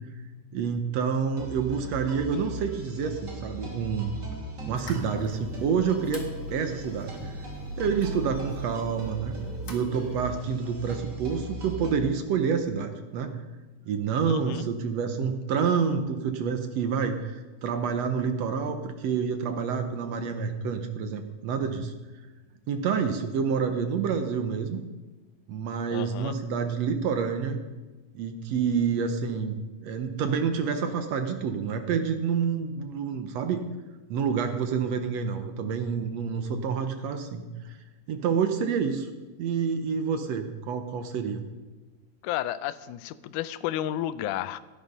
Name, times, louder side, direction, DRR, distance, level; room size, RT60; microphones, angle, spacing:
voice 1, 0.5-4.2 4.7-7.3 7.8-9.4 9.7-13.4 13.9-21.9 22.7-24.8 25.5-27.6 28.1-33.6 34.1-37.8 38.1-39.1 39.4-41.4, right 6 dB, 70° right, 7 dB, 1.6 m, -28 dB
sound 1, 1.3-11.9, right 1 dB, 30° right, 3.4 m, -38 dB
sound 2, 4.8-10.4, left 2 dB, 50° left, 0.9 m, -46 dB
voice 2, 14.3-14.7 25.9-26.4 42.2-44.6, left 12 dB, 80° left, 13 dB, 1.8 m, -32 dB
17.5 x 10.5 x 5.3 m, 1.2 s
omnidirectional pair, 4.2 m